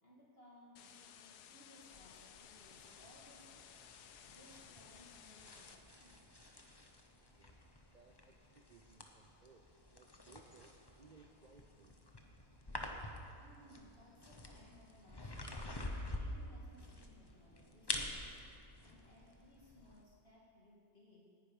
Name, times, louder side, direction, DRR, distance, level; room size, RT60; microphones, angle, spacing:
voice 1, 0.0-3.7 4.3-6.3 13.4-15.7 16.2-18.4 18.8-21.2, left 1 dB, 40° left, -4 dB, 2.2 m, -63 dB
sound 1, 0.8-5.8, left 9 dB, 85° left, 1.3 m, -58 dB
sound 2, 1.8-20.0, left 1 dB, 20° left, 0.9 m, -49 dB
voice 2, 7.9-9.7 9.9-12.0, right 4 dB, 65° right, 3 dB, 0.4 m, -64 dB
18.5 x 10.5 x 5.4 m, 2.5 s
omnidirectional pair, 1.7 m